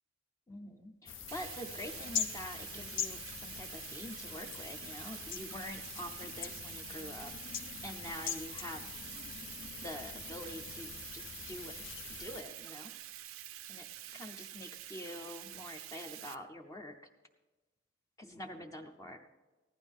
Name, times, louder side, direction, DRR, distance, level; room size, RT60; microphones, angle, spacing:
voice 1, 0.5-8.9 9.8-11.8 12.2-12.9 13.7-13.9 14.1-17.0 18.2-19.2, left 1 dB, 15° left, 4 dB, 0.6 m, -46 dB
sound 1, 1.1-12.4, left 7 dB, 65° left, 0.8 m, -43 dB
Bathtub (filling or washing), 1.3-16.4, right 13 dB, 75° right, 0.5 m, -48 dB
15.5 x 11.5 x 3.6 m, 1.2 s
head